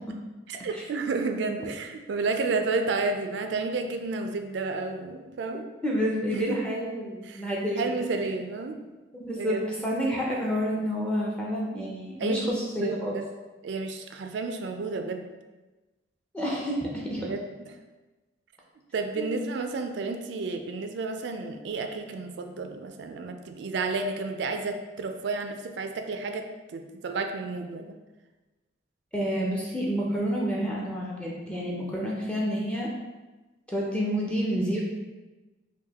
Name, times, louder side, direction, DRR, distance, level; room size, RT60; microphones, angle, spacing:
voice 1, 0.5-5.7 6.3-6.6 7.2-7.4 7.7-8.8 9.4-9.6 9.9-10.0 12.2-12.5 12.8-13.2 13.6-15.3 17.2-17.4 18.9-27.9, right 3 dB, 70° right, 5 dB, 0.3 m, -31 dB
voice 2, 5.8-8.1 9.1-13.1 16.3-17.3 19.2-19.4 29.1-32.9 33.7-34.8, equal, 5° left, -4 dB, 0.4 m, -29 dB
4.8 x 2.2 x 2.8 m, 1.2 s
head